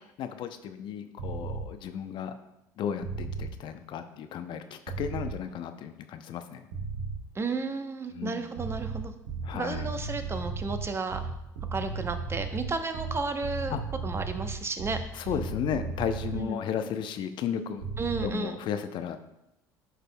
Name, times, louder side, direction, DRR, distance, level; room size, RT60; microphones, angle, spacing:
voice 1, 0.2-2.3 2.8-6.6 8.1-8.5 9.4-9.9 13.7-13.8 15.2-17.8 18.2-19.2, left 8 dB, 55° left, 9 dB, 0.6 m, -34 dB
sound 1, 1.2-1.7 3.0-3.5 4.9-5.4 6.7-7.2 8.6-16.4 17.8-18.3, right 4 dB, 80° right, 1.4 m, -35 dB
voice 2, 7.3-9.1 9.5-11.3 11.7-13.8 14.0-15.3 16.3-16.6 18.0-18.6, right 4 dB, 25° right, 8 dB, 0.9 m, -33 dB
11.0 x 5.0 x 2.2 m, 0.87 s
hypercardioid pair, 70°, 10 cm